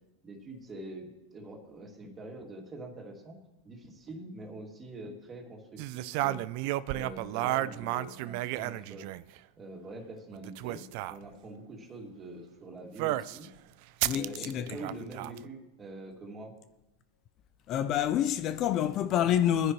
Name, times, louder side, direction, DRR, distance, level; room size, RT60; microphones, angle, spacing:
voice 1, 0.2-3.4 3.6-6.4 6.9-9.1 9.6-13.5 14.1-16.5, right 2 dB, 25° right, 2.5 m, -44 dB
sound 1, 5.8-9.4 10.3-11.2 13.0-13.5 14.0-15.4, right 16 dB, 60° right, 0.4 m, -32 dB
voice 2, 14.0-14.8 17.7-19.7, left 10 dB, 40° left, 0.5 m, -27 dB
20.5 x 10.0 x 3.1 m
hypercardioid pair, 115°, 0 cm